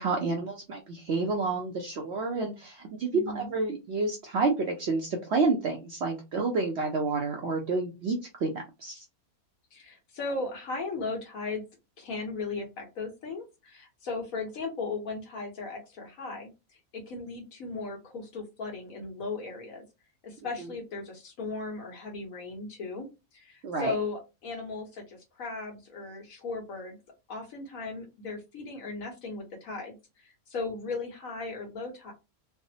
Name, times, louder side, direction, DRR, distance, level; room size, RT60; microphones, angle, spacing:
voice 1, 0.0-8.5 8.8-9.0 23.6-23.9, right 3 dB, 65° right, 2 dB, 0.7 m, -29 dB
voice 2, 3.1-3.5 9.7-11.6 12.0-16.5 16.9-19.8 20.2-23.1 23.3-27.0 27.3-32.1, left 3 dB, 65° left, 1 dB, 1.4 m, -37 dB
3.3 x 2.0 x 2.7 m, 0.25 s
omnidirectional pair, 1.6 m